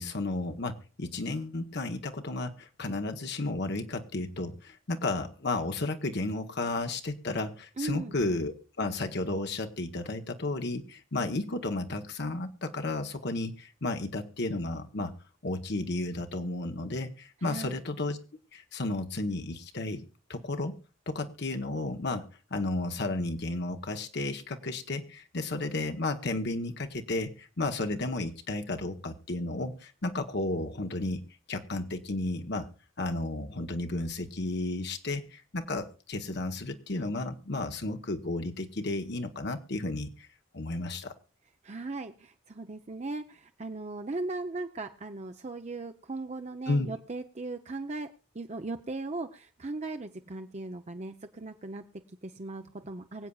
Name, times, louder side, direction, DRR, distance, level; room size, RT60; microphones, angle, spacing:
voice 1, 0.0-15.1 15.4-18.2 18.5-20.7 21.1-31.2 31.5-32.7 33.0-40.3 40.5-41.1 46.7-46.9, left 2 dB, 60° left, 6 dB, 1.1 m, -33 dB
voice 2, 7.8-8.2 17.4-17.8 41.6-53.3, right 2 dB, 35° right, 7 dB, 0.7 m, -38 dB
24.5 x 8.3 x 2.4 m, 0.34 s
head